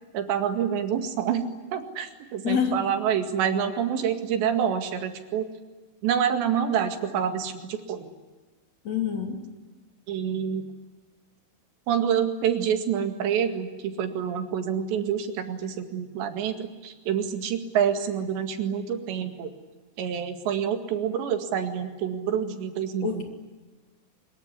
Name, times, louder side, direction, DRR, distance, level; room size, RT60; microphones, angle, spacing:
voice 1, 0.1-5.5 6.0-8.1 10.1-10.7 11.9-19.5 20.0-23.1, right 8 dB, 90° right, 7 dB, 4.3 m, -27 dB
voice 2, 2.4-2.8 8.8-9.4 23.0-23.2, left 7 dB, 40° left, 4 dB, 3.8 m, -26 dB
25.0 x 22.5 x 9.7 m, 1.2 s
omnidirectional pair, 4.9 m